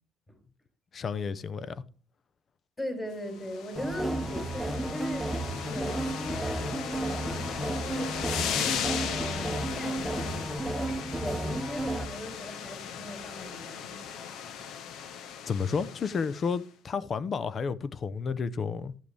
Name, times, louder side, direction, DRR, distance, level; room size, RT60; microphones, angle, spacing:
voice 1, 0.9-1.8 15.5-18.9, left 5 dB, 35° left, 0.6 m, -31 dB
voice 2, 2.8-14.0, left 1 dB, 20° left, 4.2 m, -40 dB
sound 1, 3.3-16.5, left 8 dB, 70° left, 1.0 m, -37 dB
sound 2, 3.8-12.1, right 1 dB, ahead, 1.0 m, -33 dB
12.0 x 7.6 x 3.4 m
cardioid pair, 125°, 0 cm